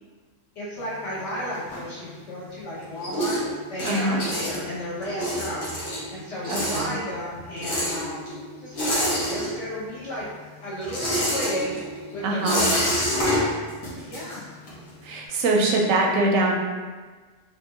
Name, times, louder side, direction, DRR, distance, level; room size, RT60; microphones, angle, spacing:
voice 1, 0.5-3.4 3.7-5.6 6.1-8.3 8.6-10.3 10.6-11.8 12.1-12.8 13.2-13.5 14.0-14.4, equal, 65° left, -9 dB, 1.4 m, -33 dB
sound 1, 0.8-2.4 2.7-9.9 10.2-14.9, equal, 85° left, 1.3 m, -28 dB
voice 2, 3.8-4.2 6.5-6.9 12.2-12.6 15.0-16.5, right 2 dB, 85° right, -1 dB, 1.0 m, -23 dB
3.4 x 2.5 x 2.8 m, 1.4 s
omnidirectional pair, 1.3 m